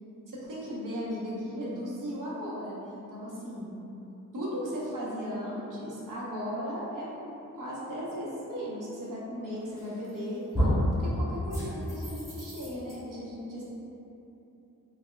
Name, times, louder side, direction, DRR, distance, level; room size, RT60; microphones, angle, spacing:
voice 1, 0.3-3.8 4.3-10.7 11.0-13.6, equal, 75° right, -7 dB, 0.9 m, -36 dB
sound 1, 9.8-10.2 10.5-10.9 11.5-12.9, equal, 10° right, 1.2 m, -29 dB
4.0 x 2.9 x 2.2 m, 2.9 s
wide cardioid pair, 85°, 32 cm